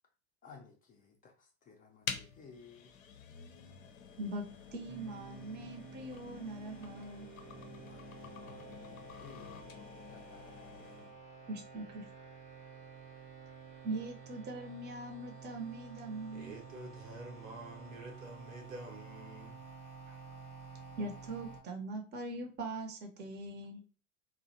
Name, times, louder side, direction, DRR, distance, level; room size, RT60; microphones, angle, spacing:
voice 1, 0.4-2.9 7.8-10.9, left 5 dB, 20° left, 2 dB, 0.4 m, -57 dB
sound 1, 2.0-11.2, left 7 dB, 80° left, 0.5 m, -48 dB
voice 2, 4.2-7.3 11.5-12.0 13.8-16.5 21.0-23.8, right 2 dB, 25° right, 4 dB, 0.6 m, -41 dB
sound 2, 4.9-21.6, right 5 dB, 55° right, 0.8 m, -51 dB
voice 3, 16.3-19.6 20.1-20.2, right 2 dB, 80° right, 1 dB, 0.9 m, -48 dB
2.5 x 2.1 x 2.6 m, 0.36 s
figure-of-eight pair, 80°, 40 cm